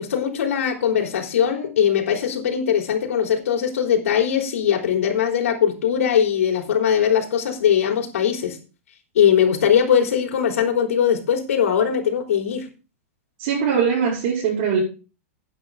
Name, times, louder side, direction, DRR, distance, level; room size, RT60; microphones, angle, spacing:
voice 1, 0.0-8.6 9.1-12.7, left 8 dB, 85° left, 3.5 m, -20 dB
voice 2, 13.4-14.8, right 7 dB, 50° right, 5.3 m, -21 dB
12.0 x 9.5 x 3.8 m
supercardioid pair, 155°, 7 cm